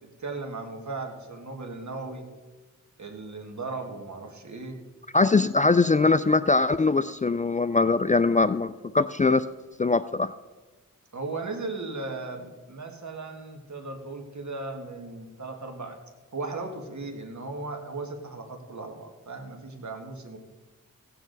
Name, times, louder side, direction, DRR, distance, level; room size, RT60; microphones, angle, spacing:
voice 1, 0.0-2.3 3.0-4.8 11.1-16.0 16.3-20.4, right 3 dB, 60° right, 4 dB, 1.8 m, -37 dB
voice 2, 5.1-9.4 9.8-10.3, left 3 dB, 25° left, 13 dB, 0.3 m, -22 dB
16.5 x 8.5 x 4.0 m, 1.2 s
cardioid pair, 55°, 32 cm